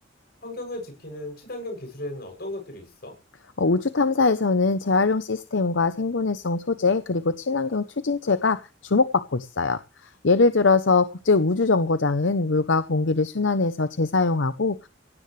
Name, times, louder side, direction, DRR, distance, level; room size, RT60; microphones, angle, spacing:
voice 1, 0.4-3.1, left 1 dB, 55° left, 3 dB, 7.5 m, -36 dB
voice 2, 3.6-8.6 8.8-9.8 10.2-14.9, left 3 dB, 75° left, 12 dB, 0.8 m, -22 dB
17.5 x 17.0 x 3.3 m, 0.32 s
head